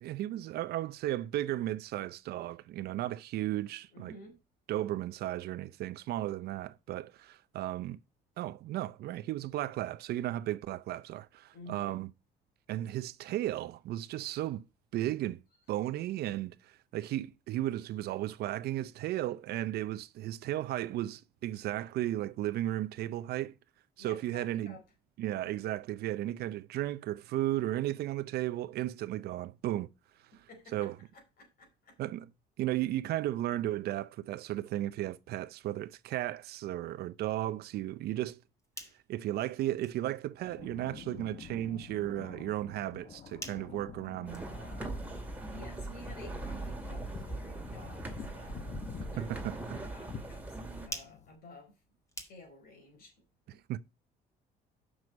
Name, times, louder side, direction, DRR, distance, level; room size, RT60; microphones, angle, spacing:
voice 1, 0.0-4.1 4.7-8.0 8.4-12.1 12.7-14.6 14.9-15.4 15.7-23.5 24.0-24.8 25.2-29.9 30.7-30.9 32.0-32.3 32.6-38.4 39.1-44.4 49.2-49.8 53.7-53.8, right 14 dB, 70° right, 0.6 m, -35 dB
voice 2, 3.9-4.4 11.5-12.0 17.0-17.1 24.0-24.8 25.4-25.5 30.3-31.9 45.5-49.4 49.7-50.6 50.9-51.8 52.3-53.1 53.5-53.6, left 2 dB, 60° left, 4.7 m, -52 dB
sound 1, 38.4-52.8, equal, 15° left, 2.0 m, -53 dB
sound 2, 40.4-51.4, left 7 dB, 45° left, 1.0 m, -48 dB
sound 3, 44.3-50.9, right 2 dB, 10° right, 2.3 m, -41 dB
6.3 x 6.2 x 5.3 m
cardioid pair, 110°, 17 cm